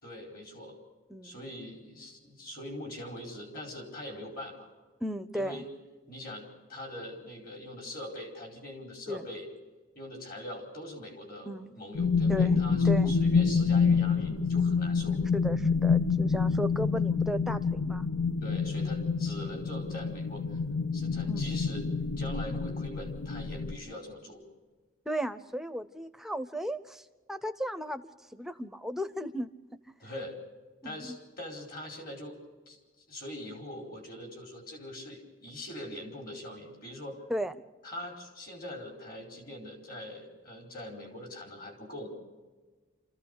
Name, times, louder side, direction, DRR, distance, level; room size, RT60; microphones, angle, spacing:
voice 1, 0.0-0.8 1.2-4.7 5.3-5.7 6.1-9.5 9.9-15.2 18.4-20.6 20.9-21.9 22.2-24.4 30.0-30.4 30.8-32.4 32.7-32.8 33.1-37.2 37.8-42.1, left 1 dB, 50° left, 4 dB, 4.5 m, -42 dB
voice 2, 1.1-1.4 5.0-5.6 9.1-9.2 11.5-11.7 12.3-13.2 15.3-18.1 21.2-21.5 25.1-29.5 30.8-31.2 37.3-37.5, equal, ahead, 10 dB, 0.7 m, -35 dB
sound 1, 11.9-23.8, left 5 dB, 80° left, 0.8 m, -27 dB
27.0 x 15.0 x 6.7 m, 1.3 s
head